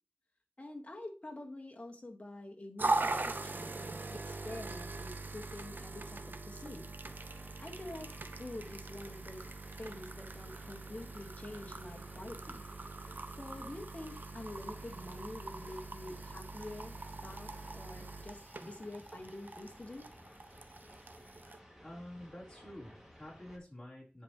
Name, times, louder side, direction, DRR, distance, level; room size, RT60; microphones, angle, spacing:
voice 1, 0.6-3.1 3.5-4.0 4.3-6.9 7.6-8.1 8.4-9.4 9.8-12.6 13.4-20.1, left 1 dB, 40° left, 1 dB, 1.5 m, -47 dB
sound 1, 2.8-21.6, right 3 dB, 65° right, 0.6 m, -41 dB
sound 2, 7.0-23.6, equal, 10° right, 2.3 m, -57 dB
voice 2, 21.8-24.2, left 1 dB, 20° left, -4 dB, 3.5 m, -49 dB
10.0 x 4.7 x 3.0 m, 0.35 s
wide cardioid pair, 50°, 4 cm